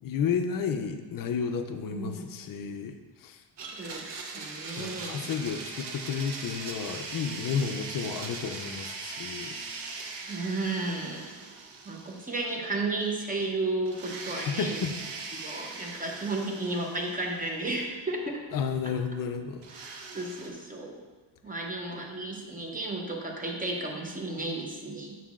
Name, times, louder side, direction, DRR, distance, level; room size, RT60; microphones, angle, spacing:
voice 1, 0.0-2.9 3.2-3.4 4.8-9.6 14.3-15.0 18.5-19.6, left 6 dB, 45° left, 6 dB, 0.4 m, -32 dB
voice 2, 1.9-2.2 3.6-4.1 4.3-5.3 10.3-11.3 11.9-14.8 15.3-18.4 20.1-21.0 21.4-25.2, right 2 dB, 15° right, 0 dB, 0.7 m, -33 dB
Domestic sounds home sounds, 3.6-12.7 13.0-13.1 13.9-17.8 19.6-20.5, right 4 dB, 55° right, 0.8 m, -40 dB
7.2 x 5.7 x 2.4 m, 1.3 s
cardioid pair, 140°, 50 cm